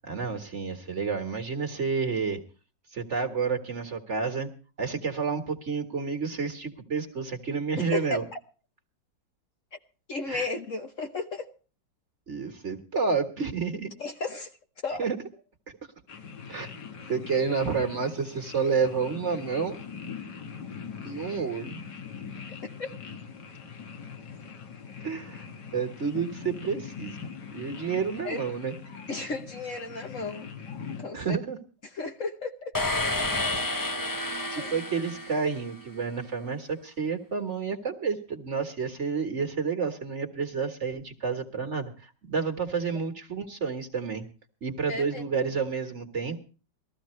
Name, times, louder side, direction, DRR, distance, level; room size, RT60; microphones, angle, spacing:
voice 1, 0.0-2.4 2.9-4.5 4.8-8.2 10.3-10.5 12.3-13.9 15.0-15.2 16.5-16.7 17.1-19.8 21.0-21.7 25.0-25.4 25.7-27.2 27.5-28.7 31.1-31.6 33.7-44.2 44.6-46.4, right 5 dB, 40° right, 1.7 m, -30 dB
voice 2, 7.8-8.2 10.1-11.5 14.0-14.5 14.8-15.1 22.4-22.9 28.2-28.4 29.1-30.5 31.0-31.4 31.8-32.8 34.6-34.8 44.9-45.2, left 3 dB, 50° left, 1.3 m, -34 dB
sound 1, 16.1-31.0, left 6 dB, 65° left, 2.2 m, -42 dB
sound 2, 32.7-35.9, left 2 dB, 25° left, 0.4 m, -30 dB
20.5 x 14.5 x 3.1 m
omnidirectional pair, 2.0 m